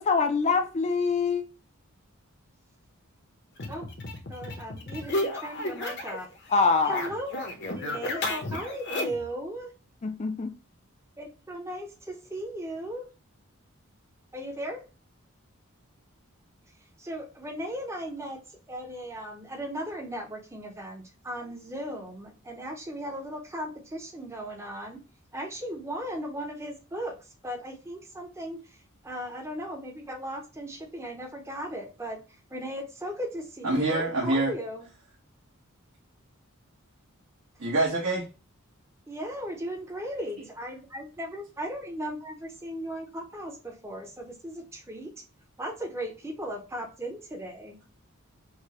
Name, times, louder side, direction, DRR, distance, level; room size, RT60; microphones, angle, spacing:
voice 1, 0.0-1.4 6.5-7.0 10.0-10.5, left 4 dB, 30° left, 0.4 m, -24 dB
sound 1, 3.6-6.3 6.5-9.3, left 1 dB, 50° left, 0.7 m, -33 dB
voice 2, 4.3-6.3 6.8-7.4 7.8-9.7 11.2-13.1 14.3-14.9 17.0-25.0 25.3-32.2 32.5-34.9 39.1-45.1 45.6-47.8, equal, 15° right, 0.6 m, -37 dB
voice 3, 33.6-34.5 37.6-38.2, right 2 dB, 75° right, 1.2 m, -25 dB
4.8 x 2.2 x 2.8 m
head